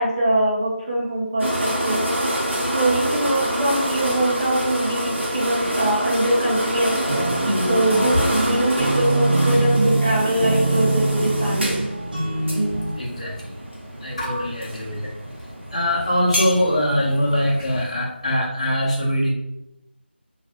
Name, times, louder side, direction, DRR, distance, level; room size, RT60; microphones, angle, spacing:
voice 1, 0.0-2.4 2.7-11.9 14.2-14.4, right 1 dB, 30° right, -6 dB, 0.7 m, -23 dB
sound 1, 1.4-17.9, equal, 85° right, 0.9 m, -27 dB
sound 2, 7.1-12.9, right 2 dB, 50° right, 1.0 m, -23 dB
voice 2, 12.7-13.5 14.0-15.1 15.7-19.3, equal, 35° left, -4 dB, 0.6 m, -22 dB
2.3 x 2.1 x 2.9 m, 0.85 s
figure-of-eight pair, 175°, 6 cm